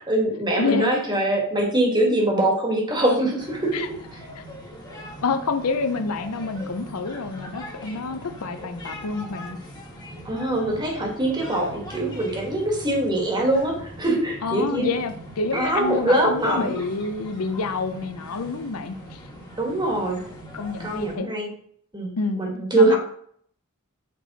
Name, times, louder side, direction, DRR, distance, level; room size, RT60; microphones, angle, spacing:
voice 1, 0.0-3.8 10.2-14.9 15.5-16.8 19.6-20.3 20.8-21.5 21.9-23.0, right 1 dB, 20° right, 1 dB, 1.3 m, -23 dB
voice 2, 0.6-0.9 3.7-3.9 4.4-4.5 5.2-9.6 14.4-19.2 20.5-21.3 22.2-22.4 22.7-23.0, left 4 dB, 85° left, 9 dB, 0.7 m, -28 dB
sound 1, 3.4-21.2, equal, 20° left, 1.3 m, -41 dB
6.1 x 4.6 x 4.0 m, 0.63 s
head